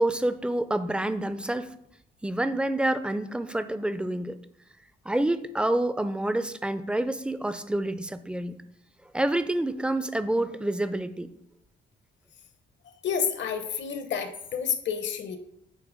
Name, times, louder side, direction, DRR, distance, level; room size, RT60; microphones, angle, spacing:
voice 1, 0.0-1.7 2.2-4.4 5.1-8.6 9.1-11.3, right 1 dB, 5° right, 12 dB, 0.4 m, -28 dB
voice 2, 13.0-15.4, left 7 dB, 65° left, 8 dB, 0.9 m, -29 dB
8.5 x 2.9 x 5.0 m, 0.76 s
cardioid pair, 90°, 20 cm